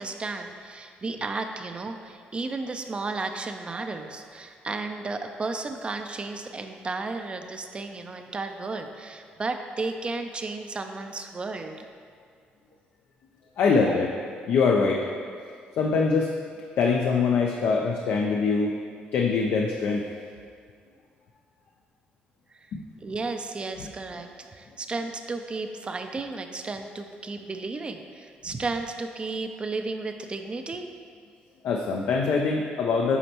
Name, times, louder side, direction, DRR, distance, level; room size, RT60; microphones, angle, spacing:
voice 1, 0.0-11.8 13.9-14.0 22.6-22.7 23.0-30.9, right 3 dB, 30° right, 6 dB, 0.4 m, -33 dB
voice 2, 13.6-14.1 14.5-15.0 15.8-16.4 16.8-18.7 19.1-20.0 22.7-22.8 31.6-33.2, left 4 dB, 70° left, 0 dB, 0.5 m, -23 dB
8.2 x 4.3 x 2.9 m, 2.1 s
cardioid pair, 85°, 4 cm